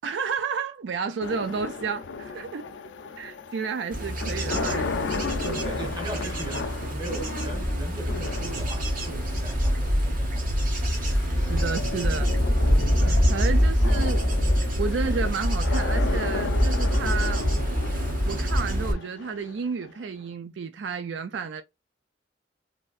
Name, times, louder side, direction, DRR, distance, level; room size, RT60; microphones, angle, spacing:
voice 1, 0.0-2.7 3.2-5.7 11.4-12.7 13.0-14.3 14.8-17.5 18.2-21.6, right 5 dB, 75° right, 0.4 m, -32 dB
sound 1, 1.2-20.2, left 4 dB, 85° left, 0.4 m, -35 dB
Bird / Insect / Wind, 3.9-18.9, equal, 50° right, 1.0 m, -25 dB
voice 2, 5.6-10.8, right 2 dB, 25° right, 1.0 m, -39 dB
3.3 x 2.6 x 2.3 m
head